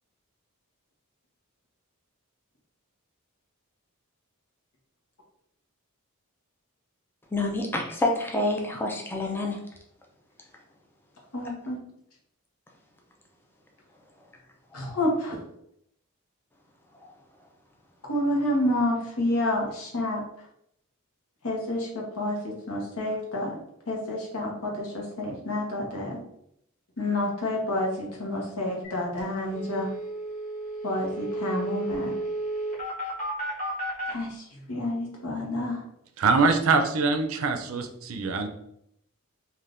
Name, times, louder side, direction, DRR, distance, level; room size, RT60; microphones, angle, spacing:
voice 1, 7.3-9.6 14.8-15.0, left 2 dB, 10° left, 0 dB, 0.4 m, -28 dB
voice 2, 11.3-11.8 14.7-15.4 18.1-20.2 21.4-23.6 23.9-26.2 27.0-29.9 30.8-32.2 34.1-35.8, left 1 dB, 80° left, -2 dB, 1.0 m, -29 dB
sound 1, 28.8-28.9 29.2-29.3 29.5-34.1, right 1 dB, 35° left, 1.3 m, -32 dB
voice 3, 36.2-38.5, right 4 dB, 65° right, 7 dB, 0.4 m, -23 dB
3.4 x 2.5 x 2.5 m, 0.74 s
head